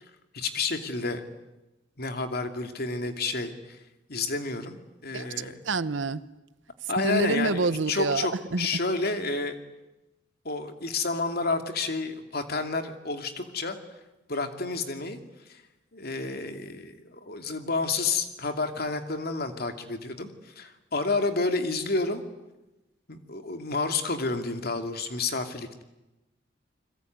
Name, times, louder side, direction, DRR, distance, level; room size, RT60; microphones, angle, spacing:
voice 1, 0.3-1.2 2.0-3.8 4.1-5.6 6.9-8.3 8.6-9.6 10.4-13.8 14.3-15.2 15.5-15.6 15.9-22.2 23.1-25.8, left 3 dB, 55° left, 2.7 m, -30 dB
voice 2, 5.1-6.2 7.0-8.7, right 3 dB, 80° right, 1.0 m, -27 dB
29.5 x 21.5 x 9.4 m
head